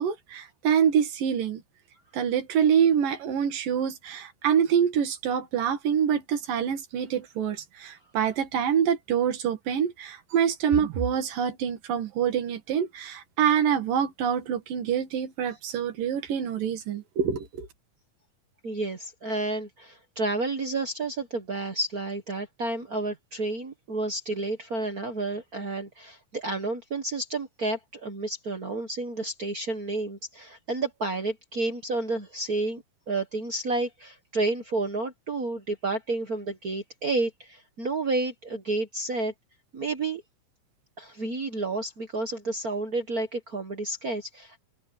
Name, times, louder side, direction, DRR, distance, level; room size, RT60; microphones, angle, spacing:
voice 1, 0.0-1.6 2.1-17.7, right 8 dB, 85° right, 3.7 m, -26 dB
voice 2, 18.6-39.3 39.7-40.2 41.0-44.6, right 2 dB, 60° right, 0.9 m, -30 dB
omnidirectional pair, 3.8 m